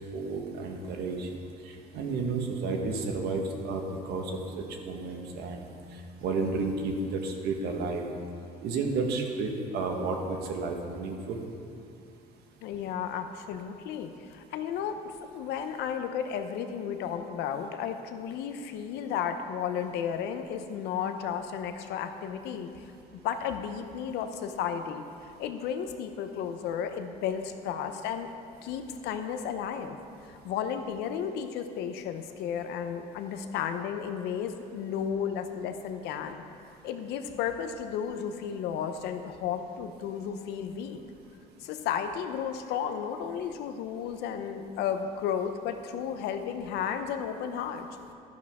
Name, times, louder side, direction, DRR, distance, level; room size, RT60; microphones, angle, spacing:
voice 1, 0.1-1.3 1.9-4.3 4.8-5.7 6.2-8.0 8.6-11.4, right 3 dB, 75° right, 3 dB, 1.5 m, -31 dB
voice 2, 12.6-22.9 23.2-25.0 25.4-28.3 28.6-30.0 30.3-36.4 36.8-41.0 41.6-47.9, left 8 dB, 80° left, 8 dB, 0.8 m, -33 dB
12.5 x 10.5 x 3.7 m, 2.5 s
cardioid pair, 120°, 17 cm